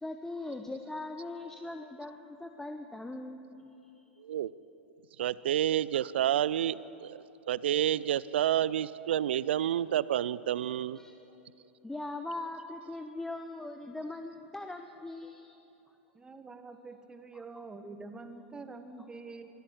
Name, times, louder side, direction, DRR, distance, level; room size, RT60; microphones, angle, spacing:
voice 1, 0.0-3.7 11.0-11.2 11.8-15.6, left 2 dB, 5° left, 5 dB, 0.9 m, -40 dB
voice 2, 5.2-7.2 7.5-11.0, right 11 dB, 65° right, 19 dB, 0.5 m, -29 dB
voice 3, 16.1-19.5, right 3 dB, 15° right, 8 dB, 1.6 m, -46 dB
24.5 x 14.0 x 8.0 m, 3.0 s
figure-of-eight pair, 95°, 6 cm